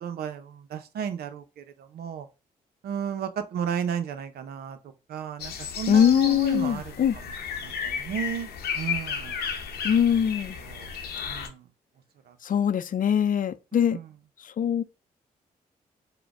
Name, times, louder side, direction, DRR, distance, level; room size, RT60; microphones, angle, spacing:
voice 1, 0.0-2.3 2.8-4.8 5.1-7.3 7.6-9.5 10.5-10.9 11.2-11.7 12.3-12.4 13.9-14.1, right 8 dB, 80° right, 0.7 m, -34 dB
sound 1, 5.4-11.5, left 7 dB, 90° left, 0.8 m, -34 dB
voice 2, 5.9-7.2 9.8-10.6 12.4-14.0 14.4-14.8, left 9 dB, 60° left, 0.5 m, -22 dB
4.9 x 2.2 x 4.7 m
cardioid pair, 60°, 16 cm